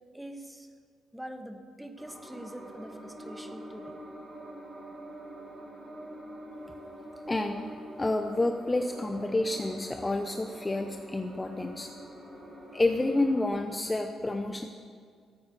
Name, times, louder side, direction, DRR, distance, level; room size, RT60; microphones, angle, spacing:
voice 1, 0.1-0.7 1.1-4.0, right 1 dB, 5° right, 6 dB, 1.2 m, -44 dB
sound 1, 2.0-13.5, right 1 dB, 25° right, 4.0 m, -45 dB
voice 2, 7.3-7.7 8.0-11.9 12.7-14.7, left 2 dB, 20° left, 6 dB, 0.6 m, -29 dB
13.5 x 8.5 x 6.9 m, 2.1 s
cardioid pair, 90°, 0 cm